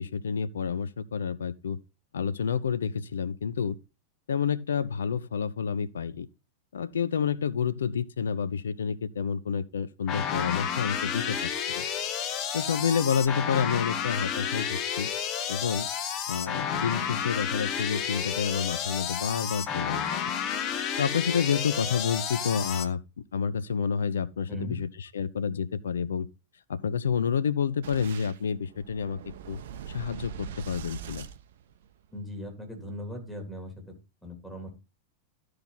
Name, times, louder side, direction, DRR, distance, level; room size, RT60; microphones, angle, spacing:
voice 1, 0.0-1.8 2.1-3.8 4.3-6.3 6.7-11.9 12.5-15.1 15.5-15.9 16.3-20.1 21.0-23.0 23.3-26.3 26.7-29.2 29.5-29.6 29.9-31.3, left 6 dB, 65° left, 0.5 m, -29 dB
sound 1, 10.1-22.9, left 8 dB, 35° left, 0.9 m, -31 dB
voice 2, 24.5-24.8 32.1-33.7 34.2-34.7, left 1 dB, 5° left, 3.1 m, -38 dB
Boom, 27.8-32.2, right 8 dB, 55° right, 0.6 m, -42 dB
12.5 x 4.7 x 4.0 m
figure-of-eight pair, 90°, 0 cm